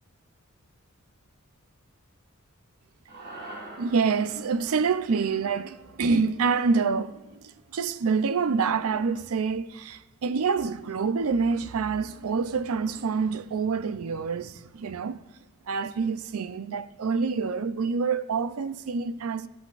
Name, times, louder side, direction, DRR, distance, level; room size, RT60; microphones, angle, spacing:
sound 1, 3.1-7.5, right 2 dB, 55° right, 2.4 m, -46 dB
voice 1, 3.8-15.2 15.7-19.5, right 5 dB, 75° right, 0.5 m, -27 dB
15.5 x 13.5 x 2.5 m
head